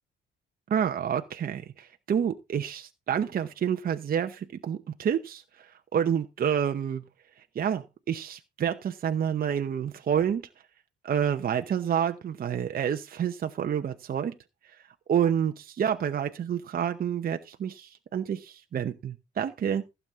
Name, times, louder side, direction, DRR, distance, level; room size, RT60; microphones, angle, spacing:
voice 1, 0.7-7.0 7.5-10.5 11.0-14.4 15.1-19.8, right 8 dB, 50° right, 0.8 m, -28 dB
15.0 x 7.1 x 3.6 m
cardioid pair, 90°, 20 cm